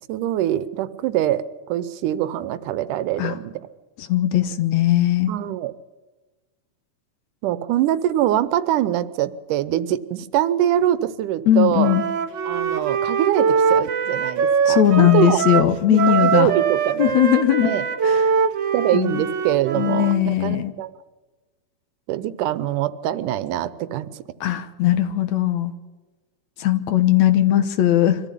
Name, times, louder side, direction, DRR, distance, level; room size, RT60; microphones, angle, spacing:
voice 1, 0.1-3.7 5.3-5.7 7.4-12.0 12.5-15.4 15.9-17.2 17.6-17.8 18.7-20.9 22.1-24.2, right 12 dB, 85° right, 15 dB, 2.4 m, -23 dB
voice 2, 4.0-5.3 11.5-12.0 14.7-16.5 17.0-17.7 18.0-18.2 18.9-19.2 19.7-20.7 24.4-25.7 26.6-28.2, left 12 dB, 70° left, 10 dB, 2.2 m, -19 dB
Wind instrument woodwind instrument, 11.8-20.2, right 6 dB, 60° right, 1.2 m, -22 dB
23.5 x 14.0 x 10.0 m, 1.2 s
omnidirectional pair, 3.6 m